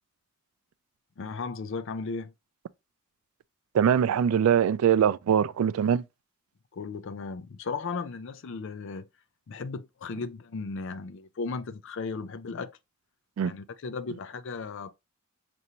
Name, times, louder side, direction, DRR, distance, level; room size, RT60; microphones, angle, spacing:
voice 1, 1.2-2.3 6.7-9.1 9.5-12.8 13.4-14.9, left 4 dB, 65° left, 0.4 m, -36 dB
voice 2, 3.7-6.0 13.4-13.5, right 8 dB, 85° right, 0.3 m, -22 dB
5.4 x 2.6 x 2.9 m
head